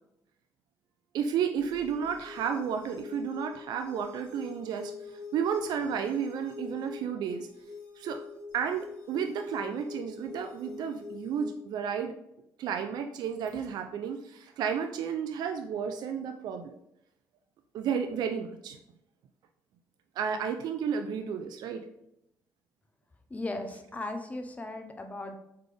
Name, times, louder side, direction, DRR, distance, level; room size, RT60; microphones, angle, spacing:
voice 1, 1.1-7.5 8.0-8.2 8.5-12.1 12.6-16.8 17.7-18.8 20.2-21.8, right 7 dB, 75° right, 6 dB, 0.4 m, -32 dB
sound 1, 1.6-11.6, left 4 dB, 85° left, 1.4 m, -45 dB
voice 2, 23.3-25.4, left 2 dB, 20° left, 6 dB, 0.6 m, -37 dB
4.0 x 3.2 x 3.4 m, 0.81 s
cardioid pair, 90°, 7 cm